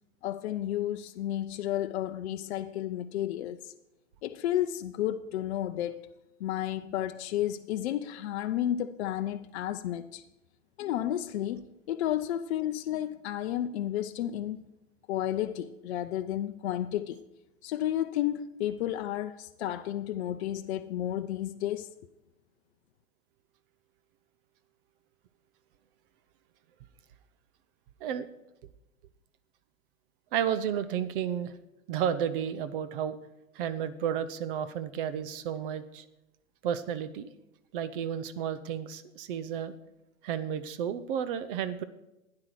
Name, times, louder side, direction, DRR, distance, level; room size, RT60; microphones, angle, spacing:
voice 1, 0.2-3.7 4.2-6.0 6.4-10.2 10.8-14.6 15.1-17.2 17.6-21.9, left 12 dB, 50° left, 0.6 m, -32 dB
voice 2, 30.3-31.5 31.9-33.2 33.5-36.0 36.6-37.3 37.7-39.7 40.2-41.8, right 9 dB, 40° right, 0.8 m, -32 dB
12.5 x 9.6 x 4.8 m
hypercardioid pair, 115°, 41 cm